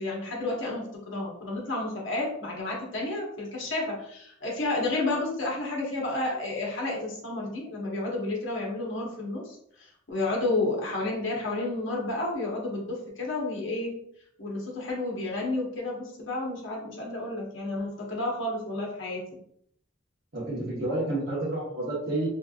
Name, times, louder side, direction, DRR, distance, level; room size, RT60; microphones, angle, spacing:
voice 1, 0.0-13.9 14.4-19.2, left 2 dB, 70° left, -3 dB, 1.3 m, -31 dB
voice 2, 20.3-22.3, right 1 dB, 55° right, -10 dB, 1.1 m, -30 dB
3.4 x 3.1 x 2.4 m, 0.69 s
head